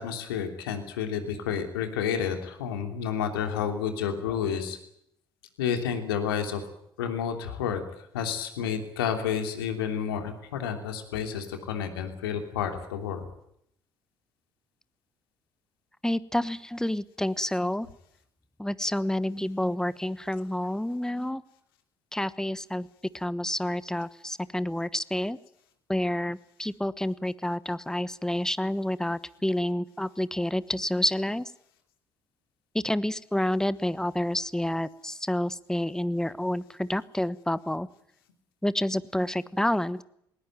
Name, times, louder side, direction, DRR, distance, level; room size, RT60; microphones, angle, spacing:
voice 1, 0.0-4.8 5.6-6.6 7.0-7.8 8.1-13.3, left 8 dB, 80° left, 5 dB, 3.1 m, -30 dB
voice 2, 16.0-17.9 18.6-21.4 22.1-22.9 23.1-25.4 25.9-31.4 32.7-37.9 38.6-40.0, left 1 dB, 5° left, 17 dB, 1.1 m, -29 dB
20.5 x 19.5 x 9.1 m, 0.73 s
figure-of-eight pair, 50°, 12 cm